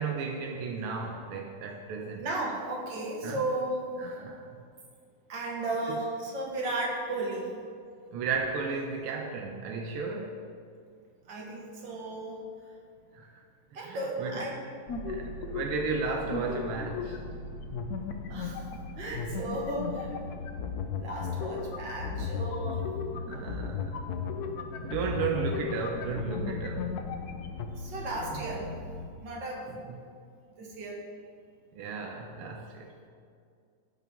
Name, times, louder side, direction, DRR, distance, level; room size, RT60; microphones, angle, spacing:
voice 1, 0.0-2.3 3.2-3.4 4.0-4.5 5.9-6.0 8.1-10.4 13.1-13.4 13.7-14.5 15.1-17.2 21.2-21.3 22.1-22.2 23.1-24.1 24.8-26.9 28.3-28.4 29.7-30.1 31.7-32.9, right 5 dB, 85° right, 2 dB, 1.6 m, -34 dB
voice 2, 2.2-3.8 4.1-4.2 5.3-7.5 11.3-12.4 13.7-14.5 18.3-18.7 19.0-20.2 21.0-22.9 27.8-28.7 29.2-29.7 30.5-31.0, right 2 dB, 60° right, -2 dB, 2.3 m, -34 dB
sound 1, 14.9-16.0 16.3-17.4 17.7-27.7, left 6 dB, 75° left, 0.8 m, -36 dB
sound 2, 14.9-29.1, left 2 dB, 50° left, 1.2 m, -41 dB
17.0 x 6.0 x 3.6 m, 2.3 s
omnidirectional pair, 2.4 m